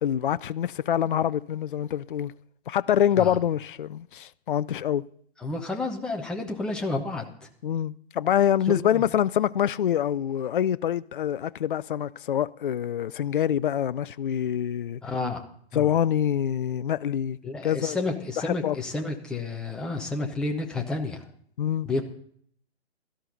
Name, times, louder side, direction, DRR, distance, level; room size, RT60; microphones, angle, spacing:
voice 1, 0.0-2.3 2.7-5.0 7.6-15.0 15.7-17.4 17.6-18.0 18.4-18.8 21.6-21.9, left 10 dB, 50° left, 0.5 m, -25 dB
voice 2, 5.4-7.5 8.9-9.0 15.0-15.5 15.7-15.9 17.4-21.2 21.8-22.0, left 3 dB, ahead, 0.7 m, -30 dB
17.0 x 12.5 x 4.0 m
figure-of-eight pair, 135°, 33 cm